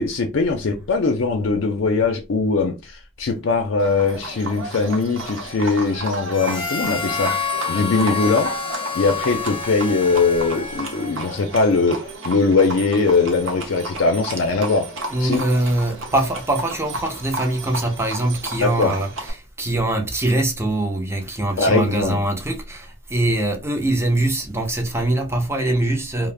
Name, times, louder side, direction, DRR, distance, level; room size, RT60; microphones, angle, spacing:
voice 1, 0.0-8.6 8.9-14.9 15.2-15.4 18.6-18.9 21.6-22.2, left 4 dB, 75° left, 0.5 m, -21 dB
Livestock farm animals working animals, 3.8-19.3, right 2 dB, 85° right, 0.8 m, -33 dB
Harmonica, 6.3-11.3, left 6 dB, 30° left, 0.6 m, -28 dB
voice 2, 15.1-26.3, right 1 dB, 15° right, 0.5 m, -23 dB
2.5 x 2.0 x 3.1 m
head